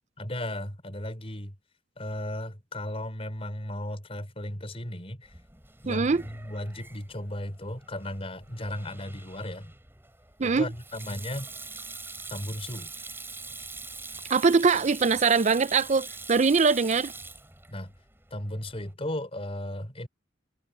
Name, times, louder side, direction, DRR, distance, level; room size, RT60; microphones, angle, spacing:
voice 1, 0.2-1.5 2.0-5.3 5.8-9.7 10.4-11.5 12.3-12.9 17.7-17.9 18.3-20.1, left 1 dB, 30° left, 5.0 m, -35 dB
Sink (filling or washing), 5.2-18.9, right 3 dB, 10° right, 3.8 m, -44 dB
voice 2, 5.9-6.2 10.4-10.7 14.3-17.1, right 4 dB, 35° right, 0.5 m, -22 dB
head